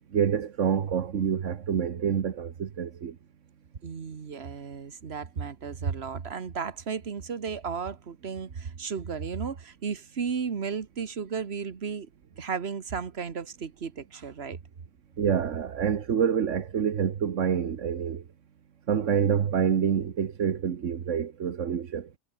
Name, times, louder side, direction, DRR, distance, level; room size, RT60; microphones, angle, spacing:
voice 1, 0.1-3.2 15.2-18.2 18.9-22.1, right 8 dB, 85° right, 1.5 m, -27 dB
voice 2, 3.8-12.1 12.4-14.6, right 6 dB, 60° right, 1.6 m, -34 dB
omnidirectional pair, 1.2 m